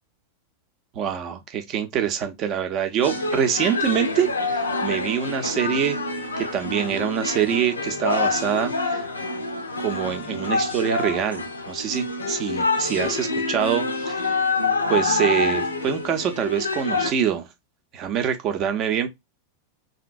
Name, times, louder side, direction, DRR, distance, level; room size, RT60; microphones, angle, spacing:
voice 1, 0.9-6.0 6.4-9.0 9.8-14.4 14.9-17.5 17.9-19.1, right 9 dB, 35° right, 0.6 m, -25 dB
sound 1, 3.0-17.1, left 3 dB, 80° left, 0.5 m, -26 dB
2.8 x 2.6 x 2.4 m
figure-of-eight pair, 90°, 0 cm